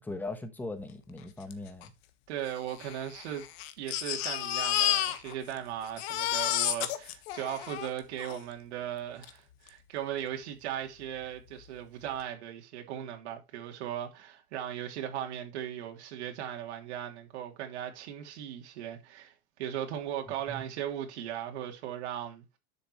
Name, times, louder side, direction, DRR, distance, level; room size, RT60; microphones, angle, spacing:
voice 1, 0.0-1.9 20.5-20.6, left 2 dB, 5° left, 1.2 m, -39 dB
Crying sobbing, 1.5-1.6 1.8-1.9 2.7-5.6 5.8-8.4 9.2-9.3 9.7-9.8, left 12 dB, 65° left, 1.5 m, -31 dB
voice 2, 2.3-3.4 3.8-22.4, right 10 dB, 80° right, 3.0 m, -38 dB
12.0 x 7.0 x 3.1 m
supercardioid pair, 175°, 33 cm